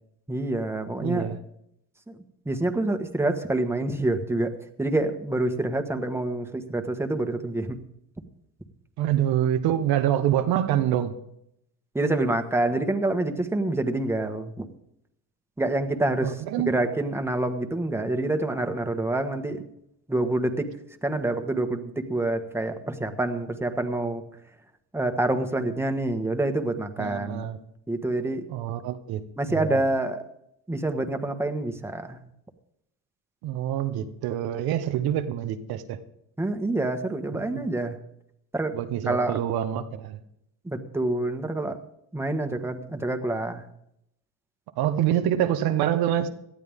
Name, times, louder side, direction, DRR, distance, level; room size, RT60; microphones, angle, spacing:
voice 1, 0.3-1.3 2.1-2.2 2.4-7.8 11.9-14.7 15.6-16.4 16.7-19.6 20.1-20.7 21.0-24.2 24.9-27.5 27.9-28.4 29.4-30.2 30.7-32.2 36.4-38.0 38.5-38.8 39.1-39.4 40.6-41.8 42.1-43.6, right 2 dB, 5° right, 1.5 m, -27 dB
voice 2, 1.0-1.4 9.0-11.1 16.2-16.8 27.0-27.6 28.5-29.2 29.5-29.8 33.4-36.0 38.7-40.2 44.8-46.3, right 11 dB, 80° right, 1.2 m, -26 dB
18.5 x 12.0 x 3.7 m
cardioid pair, 90°, 37 cm